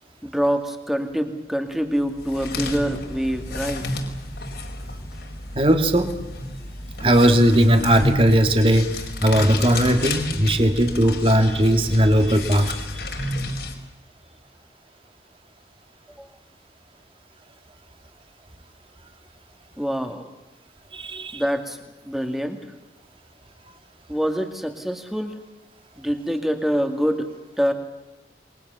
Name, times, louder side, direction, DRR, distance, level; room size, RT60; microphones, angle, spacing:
voice 1, 0.2-3.9 16.2-16.3 19.8-20.2 21.3-21.8 22.0-22.6 24.1-25.3 26.0-27.3 27.6-27.7, equal, ahead, 6 dB, 2.3 m, -25 dB
sound 1, 2.0-13.7, left 2 dB, 70° left, 4.5 m, -31 dB
voice 2, 5.6-6.2 7.0-8.9 9.2-12.8 20.9-21.4, equal, 30° right, 6 dB, 2.3 m, -18 dB
28.0 x 22.5 x 7.0 m, 1.0 s
head